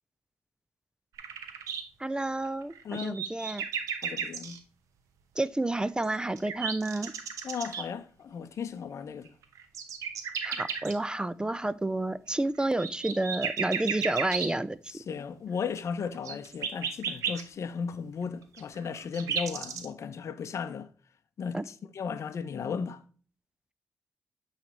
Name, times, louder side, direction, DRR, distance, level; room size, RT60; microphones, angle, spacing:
sound 1, 1.2-1.8 2.6-4.6 5.8-7.8 9.3-10.9 12.5-14.5 16.1-17.4 18.6-19.9, right 7 dB, 85° right, 0.9 m, -33 dB
voice 1, 2.0-3.6 5.4-7.1 10.4-14.8 21.5-21.6, right 2 dB, 15° right, 0.4 m, -30 dB
voice 2, 2.8-3.2 4.0-4.6 7.4-9.3 14.9-20.9 21.4-23.0, left 6 dB, 65° left, 0.6 m, -35 dB
8.8 x 3.3 x 4.1 m
supercardioid pair, 55°, 5 cm